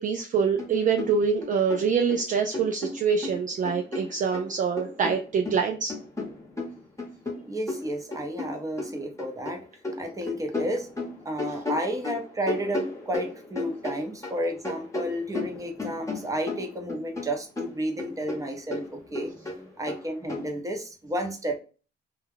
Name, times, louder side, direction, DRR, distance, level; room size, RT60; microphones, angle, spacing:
voice 1, 0.0-5.9 11.5-11.6, right 6 dB, 40° right, 4 dB, 0.4 m, -25 dB
sound 1, 0.6-0.7 1.0-2.2 2.5-4.5 4.8-9.5 9.8-14.4 14.6-17.3 17.6-20.5, left 2 dB, 15° left, 1.0 m, -34 dB
voice 2, 7.5-9.6 10.0-10.9 11.2-21.6, equal, 15° right, 3 dB, 0.8 m, -32 dB
2.3 x 2.2 x 3.4 m, 0.36 s
cardioid pair, 90°, 20 cm